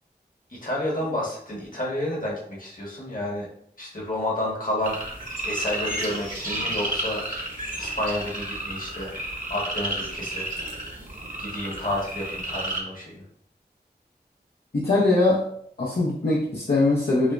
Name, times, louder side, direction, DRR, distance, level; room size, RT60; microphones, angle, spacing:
voice 1, 0.5-3.5 3.8-7.2 7.8-10.5 11.4-13.2, left 1 dB, 50° left, -4 dB, 1.4 m, -30 dB
sound 1, 4.8-12.8, right 1 dB, 50° right, 1.2 m, -32 dB
voice 2, 14.7-15.5 15.8-17.3, left 2 dB, 70° left, -6 dB, 0.7 m, -21 dB
6.1 x 2.1 x 2.5 m, 0.67 s
wide cardioid pair, 45°, 18 cm